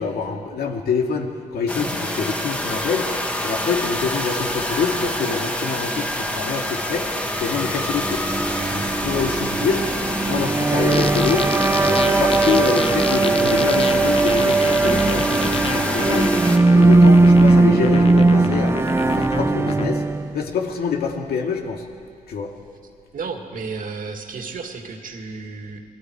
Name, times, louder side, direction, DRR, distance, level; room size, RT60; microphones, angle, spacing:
voice 1, 0.0-3.1 3.4-7.1 7.4-8.2 8.7-9.9 10.2-11.5 11.8-20.0 20.3-21.9 22.3-22.5, left 5 dB, 85° left, 2 dB, 2.3 m, -26 dB
sound 1, 1.7-16.6, left 1 dB, 10° left, 1.8 m, -27 dB
sound 2, 7.4-20.3, right 3 dB, 15° right, 0.6 m, -18 dB
sound 3, 10.9-19.9, left 6 dB, 35° left, 0.5 m, -29 dB
voice 2, 23.1-25.8, right 4 dB, 60° right, 4 dB, 2.1 m, -32 dB
28.5 x 21.5 x 4.8 m, 2.2 s
wide cardioid pair, 130°, 16 cm